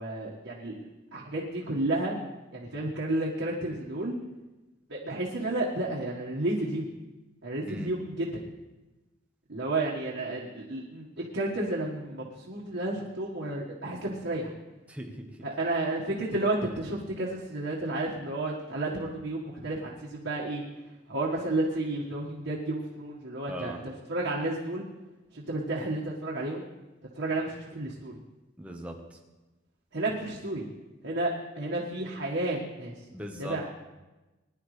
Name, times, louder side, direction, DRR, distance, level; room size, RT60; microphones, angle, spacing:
voice 1, 0.0-2.2 2.5-4.1 4.9-6.8 7.4-8.4 9.5-14.5 15.4-20.6 21.1-24.8 25.3-26.6 27.1-28.2 29.9-30.7 31.0-32.9 33.4-33.7, right 2 dB, 90° right, -4 dB, 1.7 m, -31 dB
voice 2, 14.9-15.4 23.5-23.8 28.6-29.2 33.1-33.7, equal, 5° right, 2 dB, 1.2 m, -40 dB
20.5 x 10.5 x 3.3 m, 1.1 s
head